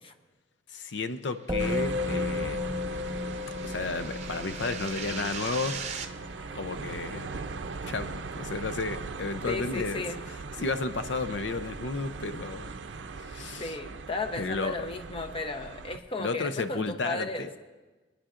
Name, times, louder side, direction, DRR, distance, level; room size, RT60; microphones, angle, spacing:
voice 1, 0.7-2.7 3.6-5.8 6.5-7.3 7.8-10.0 10.6-12.7 13.2-13.7 14.4-14.9 16.2-17.5, left 3 dB, 80° left, 10 dB, 0.6 m, -33 dB
Musical instrument, 1.5-11.0, left 3 dB, 20° right, 1.1 m, -36 dB
sound 1, 1.6-16.0, right 4 dB, 85° right, 0.5 m, -40 dB
sound 2, 1.7-6.1, right 6 dB, 40° right, 0.7 m, -40 dB
voice 2, 9.5-10.2 13.6-17.5, left 3 dB, 30° left, 5 dB, 0.9 m, -34 dB
27.5 x 9.9 x 2.5 m, 1.3 s
head